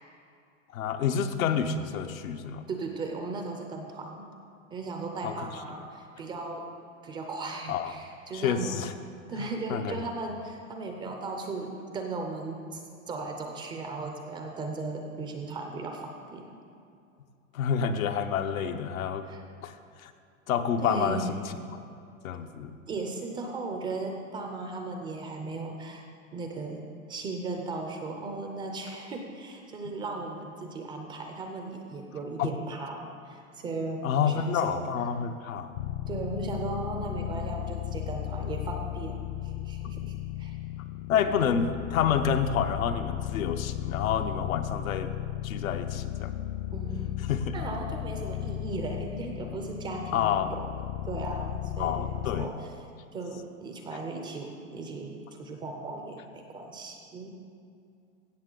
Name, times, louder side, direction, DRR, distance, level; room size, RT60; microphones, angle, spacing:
voice 1, 0.7-2.6 5.2-5.3 7.7-7.9 8.3-8.9 9.4-10.0 17.5-19.3 19.6-20.1 20.5-21.4 21.7-21.8 22.2-22.7 32.4-32.5 34.0-35.7 41.1-45.1 45.4-46.3 47.3-47.5 50.1-50.5 51.8-52.5, left 7 dB, 85° left, 7 dB, 0.8 m, -28 dB
voice 2, 2.7-4.3 4.7-6.7 7.0-8.9 9.3-16.6 19.3-19.4 20.8-21.4 22.9-26.1 26.3-34.9 36.1-40.6 41.1-41.2 46.7-47.2 47.5-52.7 53.1-57.4, right 3 dB, 15° right, 3 dB, 0.3 m, -37 dB
sound 1, 35.7-52.5, left 14 dB, 55° left, 0.5 m, -35 dB
16.0 x 6.7 x 3.8 m, 2.5 s
hypercardioid pair, 135°, 40 cm